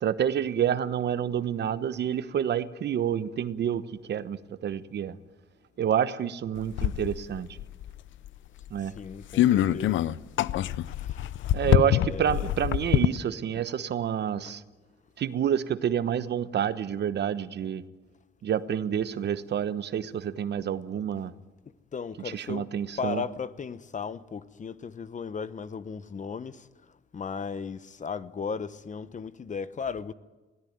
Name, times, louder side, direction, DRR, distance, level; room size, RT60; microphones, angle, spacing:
voice 1, 0.0-3.8 4.1-4.4 4.6-5.2 5.8-7.5 8.7-8.9 9.4-9.6 11.5-14.6 15.2-17.8 18.4-21.3 22.3-23.2, right 9 dB, 60° right, 1.1 m, -28 dB
sound 1, 6.7-7.9 8.2-8.3 8.6-8.7 9.3-13.2, left 12 dB, 75° left, 0.6 m, -25 dB
voice 2, 8.8-10.0 10.9-11.3 11.7-12.5 13.5-13.7 14.5-14.6 21.9-22.7 23.0-26.7 27.1-30.1, left 6 dB, 40° left, 1.0 m, -36 dB
21.0 x 17.0 x 9.4 m
cardioid pair, 90°, 20 cm